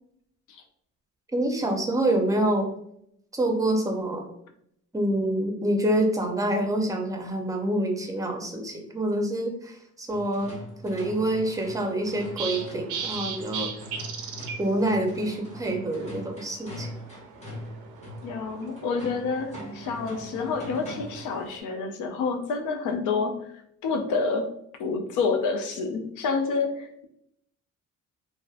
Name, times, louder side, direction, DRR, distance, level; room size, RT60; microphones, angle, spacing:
voice 1, 1.3-2.7 3.3-4.3 4.9-10.5 10.8-13.7 14.6-16.9, right 1 dB, 10° right, 3 dB, 0.5 m, -26 dB
sound 1, 10.1-21.3, equal, 20° left, 0.9 m, -42 dB
sound 2, 11.1-21.6, right 6 dB, 90° right, 0.5 m, -40 dB
voice 2, 18.2-24.5 24.8-27.1, left 4 dB, 80° left, 4 dB, 0.5 m, -28 dB
2.6 x 2.1 x 2.4 m, 0.71 s
cardioid pair, 90°, 30 cm